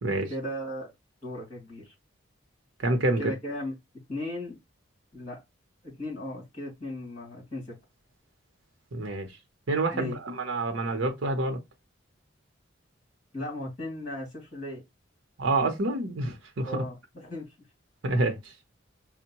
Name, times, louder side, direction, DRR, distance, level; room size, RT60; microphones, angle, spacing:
voice 1, 0.3-0.9 1.2-1.9 3.2-3.7 4.1-4.6 5.1-5.4 5.8-7.8 9.9-10.2 13.3-14.8 16.6-17.5, left 1 dB, 35° left, 2.1 m, -36 dB
voice 2, 2.8-3.3 8.9-9.3 9.7-11.6 15.4-16.8 18.0-18.5, right 2 dB, 70° right, 0.8 m, -27 dB
4.4 x 2.2 x 2.8 m
head